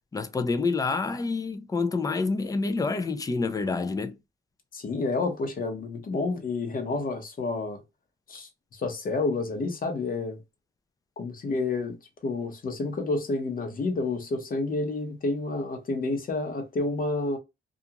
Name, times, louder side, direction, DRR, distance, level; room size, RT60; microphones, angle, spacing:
voice 1, 0.1-4.1, left 4 dB, 20° left, 0.4 m, -27 dB
voice 2, 4.7-7.8 8.3-10.4 11.2-12.0 12.2-17.4, left 3 dB, 45° left, 0.9 m, -29 dB
2.5 x 2.4 x 2.8 m
cardioid pair, 90°, 20 cm